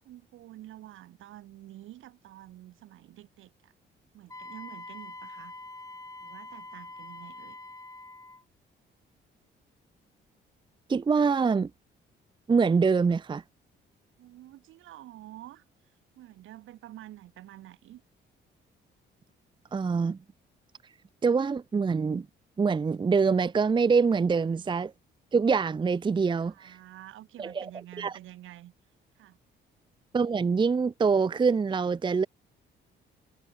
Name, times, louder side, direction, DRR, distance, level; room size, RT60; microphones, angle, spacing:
voice 1, 0.0-3.7 4.1-5.5 6.2-7.6 14.2-15.6 16.1-18.0 26.4-28.7 29.1-29.4, right 14 dB, 85° right, 6.7 m, -48 dB
Wind instrument woodwind instrument, 4.3-8.4, left 2 dB, 15° left, 3.5 m, -44 dB
voice 2, 10.9-11.7 12.5-13.4 19.7-20.2 21.2-22.3 22.6-24.9 25.3-26.8 27.4-27.7 28.0-28.1 30.1-32.3, right 5 dB, 25° right, 0.6 m, -25 dB
cardioid pair, 90°, 20 cm